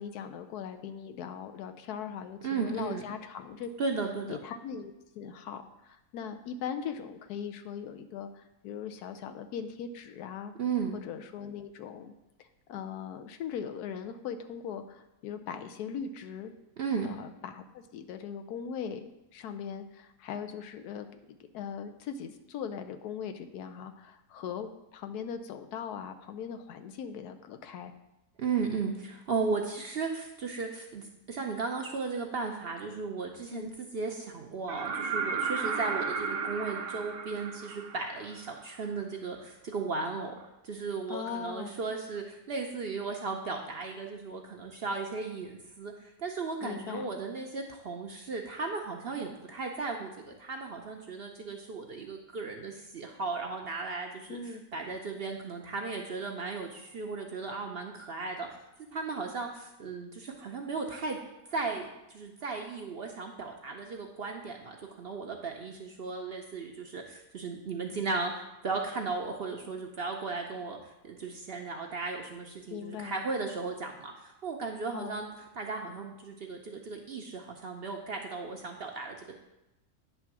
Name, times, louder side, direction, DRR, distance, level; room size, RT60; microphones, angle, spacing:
voice 1, 0.0-3.7 4.3-10.5 10.9-12.1 12.4-16.5 17.0-21.1 21.5-27.9 33.5-33.7 41.1-41.7 46.6-47.1 54.3-54.6 72.7-73.2 74.9-75.2, left 7 dB, 90° left, 8 dB, 1.2 m, -40 dB
voice 2, 2.4-3.0 3.8-4.4 10.6-11.0 16.8-17.2 28.4-40.3 40.6-54.4 54.7-58.5 58.9-61.2 61.5-70.8 71.0-75.3 75.5-79.2, right 4 dB, 55° right, 2 dB, 0.7 m, -35 dB
sound 1, 34.7-38.5 40.4-40.5, right 5 dB, 75° right, 1.4 m, -34 dB
9.3 x 3.5 x 5.9 m, 0.93 s
omnidirectional pair, 1.6 m